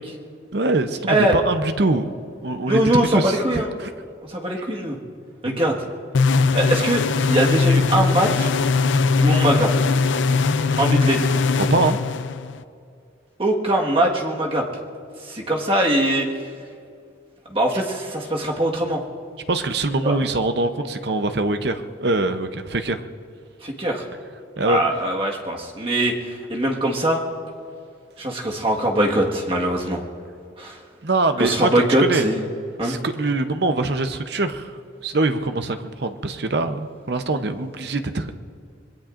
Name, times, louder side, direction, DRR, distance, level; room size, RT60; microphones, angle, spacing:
voice 1, 0.5-2.0 2.4-2.8 3.1-3.9 5.4-5.6 11.7-12.0 19.5-23.0 24.6-24.8 31.0-32.3 32.8-34.7 35.0-38.3, right 2 dB, 55° right, 8 dB, 0.7 m, -23 dB
voice 2, 2.7-3.7 4.2-5.0 5.4-5.8 6.5-8.5 9.2-9.7 10.8-11.2 13.4-14.6 15.2-16.3 17.5-19.0 20.0-20.1 23.6-24.0 24.6-27.2 28.2-30.0 30.6-30.8 31.4-32.4 32.8-33.0, right 1 dB, 30° right, -1 dB, 1.6 m, -21 dB
sound 1, 6.1-12.6, left 4 dB, 75° left, 0.5 m, -20 dB
26.0 x 20.5 x 2.5 m, 2.3 s
head